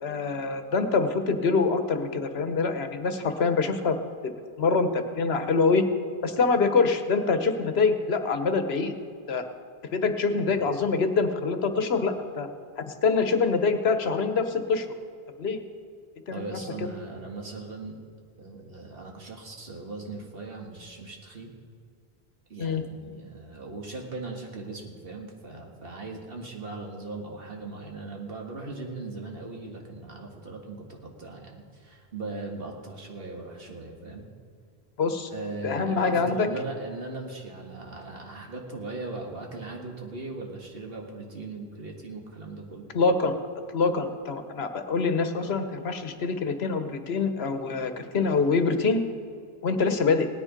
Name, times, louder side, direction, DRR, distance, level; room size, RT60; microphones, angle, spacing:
voice 1, 0.0-4.0 4.6-5.8 6.2-8.9 9.3-9.4 9.9-12.5 12.8-14.9 15.4-15.6 16.3-16.6 22.6-22.8 35.0-35.3 35.6-36.5 42.9-43.4 43.7-49.0 49.6-50.3, left 4 dB, 85° left, 8 dB, 1.2 m, -25 dB
voice 2, 16.3-18.0 18.4-21.5 22.5-34.3 35.3-42.9, right 3 dB, 65° right, 1 dB, 1.9 m, -39 dB
17.0 x 10.0 x 5.2 m, 2.2 s
omnidirectional pair, 1.0 m